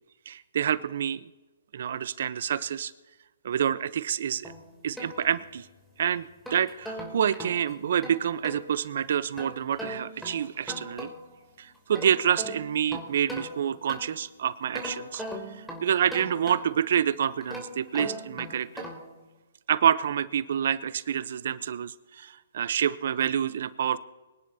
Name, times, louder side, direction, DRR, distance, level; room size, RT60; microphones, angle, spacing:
voice 1, 0.3-1.3 1.7-2.9 3.4-4.5 4.8-5.7 6.0-11.1 11.6-15.2 15.5-18.8 19.7-24.0, right 9 dB, 60° right, 16 dB, 0.6 m, -27 dB
sound 1, 4.4-5.8 6.2-8.7 9.4-11.4 11.7-14.3 14.7-16.9 17.4-19.2, equal, ahead, 2.9 m, -40 dB
24.5 x 10.5 x 2.7 m, 1.2 s
hypercardioid pair, 140°, 0 cm